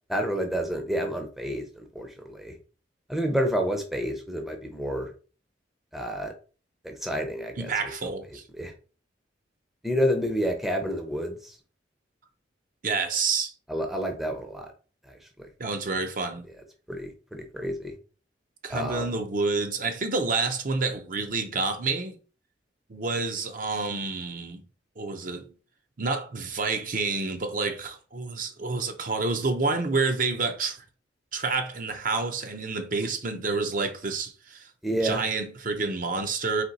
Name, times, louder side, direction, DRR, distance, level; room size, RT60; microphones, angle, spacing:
voice 1, 0.1-2.6 3.1-5.1 5.9-6.3 6.8-7.7 8.0-8.1 8.5-8.7 9.8-11.6 13.7-14.7 15.0-15.5 16.9-18.0 18.7-19.1 34.8-35.2, equal, ahead, 0.6 m, -29 dB
voice 2, 7.6-8.4 12.8-13.5 15.6-16.5 18.6-22.2 22.9-24.6 25.0-25.5 26.0-30.8 31.3-36.6, right 4 dB, 45° right, 0.6 m, -29 dB
4.3 x 2.8 x 4.0 m
head